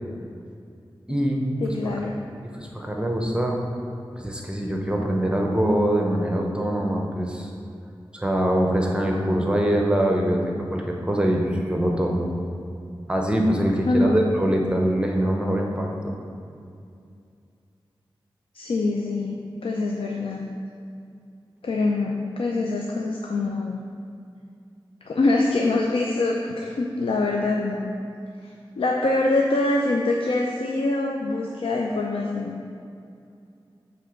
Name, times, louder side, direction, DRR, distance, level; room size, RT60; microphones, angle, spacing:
voice 1, 1.1-1.5 2.6-3.6 4.2-7.5 8.1-12.3 13.1-16.1, right 1 dB, 10° right, 0 dB, 0.9 m, -23 dB
voice 2, 1.6-2.2 13.9-14.2 18.5-20.5 21.6-23.8 25.1-27.9 28.4-32.6, left 2 dB, 80° left, -1 dB, 0.5 m, -24 dB
7.6 x 3.4 x 5.1 m, 2.5 s
cardioid pair, 50°, 9 cm